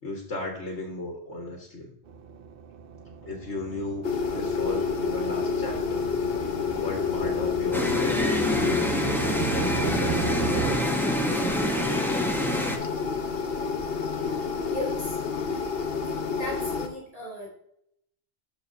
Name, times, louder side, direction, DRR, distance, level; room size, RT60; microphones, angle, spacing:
voice 1, 0.0-1.9 3.2-6.1 6.7-10.8, left 2 dB, 90° left, 0 dB, 1.8 m, -36 dB
sound 1, 2.1-10.8, right 6 dB, 60° right, 0.8 m, -36 dB
sound 2, 4.0-16.9, left 5 dB, 60° left, 1.0 m, -29 dB
sound 3, 7.7-12.8, equal, ahead, 0.8 m, -27 dB
voice 2, 14.6-15.8 16.4-17.5, left 1 dB, 45° left, -4 dB, 3.0 m, -37 dB
12.5 x 4.8 x 2.7 m, 0.72 s
omnidirectional pair, 1.1 m